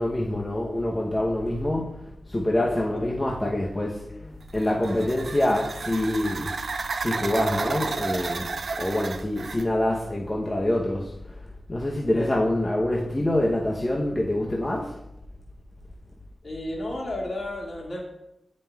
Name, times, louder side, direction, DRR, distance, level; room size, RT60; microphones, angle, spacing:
voice 1, 0.0-4.0 4.5-6.5 7.0-11.4 11.7-15.0, left 1 dB, 25° left, -2 dB, 0.7 m, -26 dB
sound 1, 4.4-9.7, right 4 dB, 70° right, 0.3 m, -32 dB
voice 2, 16.4-18.0, left 1 dB, 55° left, -3 dB, 1.8 m, -33 dB
9.0 x 5.2 x 2.3 m, 0.87 s
wide cardioid pair, 70°, 0 cm